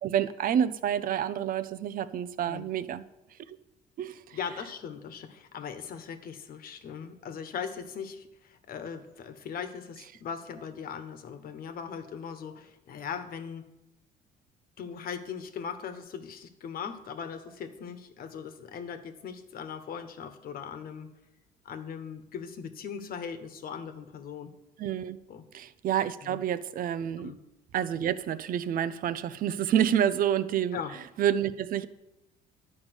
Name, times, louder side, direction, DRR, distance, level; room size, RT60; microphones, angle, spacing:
voice 1, 0.0-3.0 3.5-3.6 4.0-4.4 24.8-25.2 25.5-27.3 27.7-30.8 31.2-31.9, right 9 dB, 55° right, 14 dB, 0.7 m, -28 dB
voice 2, 4.3-13.6 14.8-21.1 21.6-24.5 25.3-25.5 26.2-26.4 27.2-27.4 30.7-30.9, left 7 dB, 60° left, 9 dB, 1.3 m, -39 dB
11.5 x 5.4 x 8.2 m, 0.90 s
cardioid pair, 110°, 17 cm